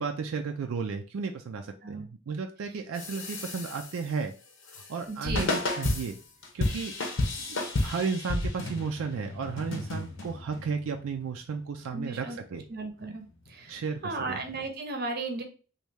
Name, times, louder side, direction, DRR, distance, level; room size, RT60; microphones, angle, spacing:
voice 1, 0.0-4.3 4.9-6.2 6.5-6.9 7.5-12.6 13.7-14.0 14.3-14.4, right 5 dB, 80° right, 4 dB, 0.4 m, -33 dB
sound 1, 2.9-4.1 4.6-14.7, left 2 dB, 65° left, 0.8 m, -33 dB
voice 2, 5.1-5.6 11.9-12.4 12.7-13.8 14.0-15.4, right 3 dB, 45° right, 5 dB, 0.7 m, -35 dB
3.1 x 2.7 x 3.3 m, 0.36 s
head